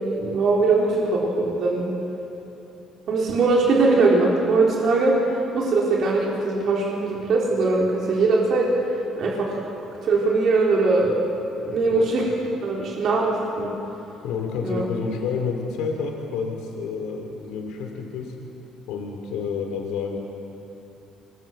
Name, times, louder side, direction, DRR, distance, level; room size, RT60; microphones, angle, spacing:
voice 1, 0.0-1.9 3.1-8.7 9.2-9.6 10.0-11.2 11.6-12.2 12.6-13.7 14.6-14.8, right 3 dB, 55° right, -3 dB, 3.9 m, -21 dB
voice 2, 14.2-18.3 18.9-20.2, left 5 dB, 85° left, 3 dB, 2.8 m, -29 dB
25.0 x 22.0 x 7.8 m, 2.9 s
cardioid pair, 110°, 0 cm